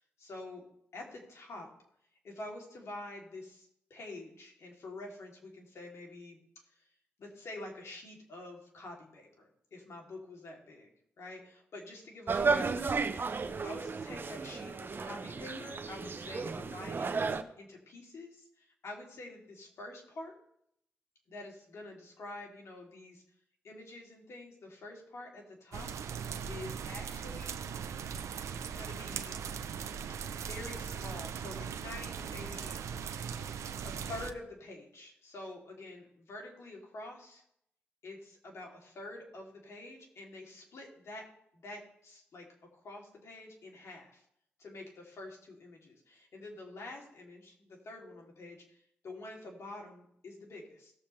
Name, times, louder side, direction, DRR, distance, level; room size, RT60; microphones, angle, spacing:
voice 1, 0.2-0.6 0.9-1.7 2.2-6.4 7.2-10.9 11.2-17.1 17.6-20.3 21.3-23.2 23.6-25.9 26.5-27.6 28.7-29.4 30.3-32.8 33.8-37.4 38.0-41.3 41.5-42.5 42.7-44.2 44.6-50.9, left 2 dB, 70° left, 0 dB, 3.0 m, -47 dB
sound 1, 12.3-17.4, right 4 dB, 45° right, 0.9 m, -33 dB
sound 2, 25.7-34.3, right 7 dB, 85° right, 0.7 m, -39 dB
17.5 x 7.1 x 3.3 m, 0.73 s
cardioid pair, 60°, 5 cm